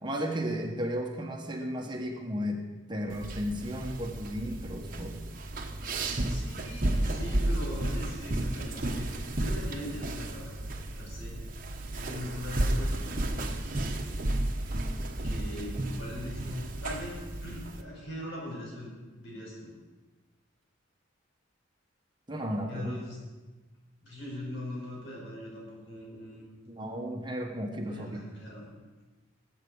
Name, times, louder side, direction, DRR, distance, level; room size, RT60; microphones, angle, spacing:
voice 1, 0.0-2.6 2.9-5.2 22.3-23.0 26.7-28.2, equal, 20° right, 2 dB, 1.2 m, -34 dB
sound 1, 3.1-17.8, right 1 dB, 45° right, 1.1 m, -32 dB
voice 2, 6.3-9.0 9.4-10.6 11.0-11.4 11.9-14.3 15.2-18.9 19.2-19.7 22.7-23.2 24.0-26.5 27.9-28.7, left 1 dB, 65° left, -3 dB, 5.7 m, -41 dB
20.0 x 8.2 x 5.4 m, 1.3 s
head